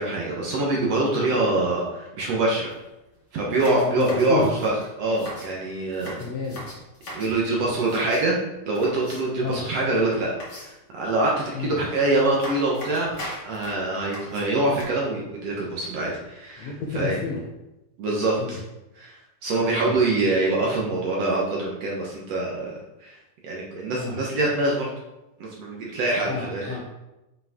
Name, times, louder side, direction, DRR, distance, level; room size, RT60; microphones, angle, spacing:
voice 1, 0.0-2.7 3.3-6.2 7.1-8.4 8.7-10.3 10.6-17.2 18.0-18.6 19.0-19.2 19.4-22.7 23.0-23.2 23.4-24.9 25.4-26.8, right 2 dB, 65° right, -3 dB, 1.7 m, -24 dB
sound 1, 2.6-2.7 3.1-3.2 3.6-5.5 5.9-7.3 7.7-8.3 8.7-9.4 10.4-11.0 11.8-12.0 12.3-14.8, equal, 35° left, 1.8 m, -39 dB
voice 2, 3.7-4.5 6.2-6.7 7.4-7.7 9.4-9.6 11.6-11.8 16.6-17.4 18.4-18.6 19.6-20.0 24.0-24.2 26.3-26.8, left 4 dB, 70° left, -3 dB, 1.6 m, -30 dB
7.8 x 5.5 x 3.7 m, 0.98 s
omnidirectional pair, 4.3 m